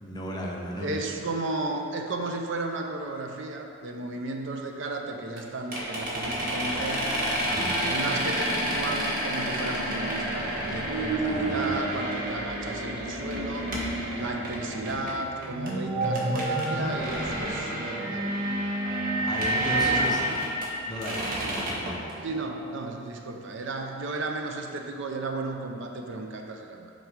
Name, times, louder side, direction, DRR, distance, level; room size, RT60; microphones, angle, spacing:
voice 1, 0.0-0.9 7.5-7.7 11.2-12.0 19.3-20.2 20.9-22.0, equal, 20° left, -2 dB, 0.8 m, -35 dB
voice 2, 0.8-7.1 7.8-13.7 14.1-18.4 19.5-20.1 22.2-26.9, right 2 dB, 65° right, 3 dB, 0.6 m, -34 dB
sound 1, 5.4-5.5 5.7-15.7 16.0-20.7 21.0-22.1, equal, 45° right, 1.2 m, -31 dB
sound 2, 7.5-22.8, right 2 dB, 90° right, 1.3 m, -33 dB
5.8 x 4.2 x 5.1 m, 2.4 s
head